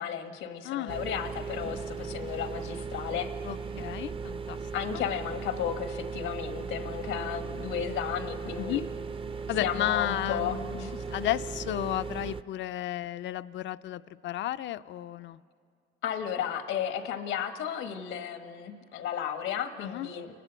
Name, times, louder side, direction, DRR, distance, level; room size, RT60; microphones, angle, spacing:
voice 1, 0.0-3.3 4.7-8.8 9.6-11.0 16.0-20.4, left 8 dB, 90° left, 7 dB, 1.3 m, -34 dB
voice 2, 0.6-1.0 3.4-4.6 8.6-8.8 9.5-15.4 19.8-20.1, left 13 dB, 70° left, 13 dB, 0.5 m, -33 dB
sound 1, 0.9-12.4, right 5 dB, 25° right, 0.5 m, -37 dB
29.0 x 12.0 x 8.0 m, 2.3 s
cardioid pair, 90°, 20 cm